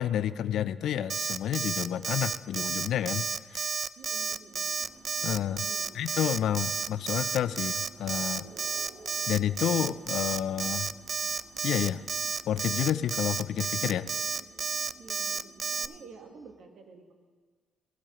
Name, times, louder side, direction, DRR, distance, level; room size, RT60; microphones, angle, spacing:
voice 1, 0.0-3.2 3.5-3.7 5.2-5.7 5.9-8.5 9.3-10.9 11.6-12.0 12.5-14.1, left 10 dB, 75° left, 14 dB, 0.4 m, -30 dB
Alarm, 1.1-15.9, right 5 dB, 45° right, 0.3 m, -31 dB
voice 2, 4.0-4.8 5.7-5.9 8.5-8.6 15.0-17.1, right 4 dB, 65° right, 4 dB, 1.4 m, -51 dB
sound 1, 4.0-16.6, right 5 dB, 85° right, 1.1 m, -57 dB
sound 2, 4.8-13.2, equal, ahead, 3.1 m, -60 dB
17.5 x 10.5 x 3.0 m, 1.5 s
cardioid pair, 90°, 0 cm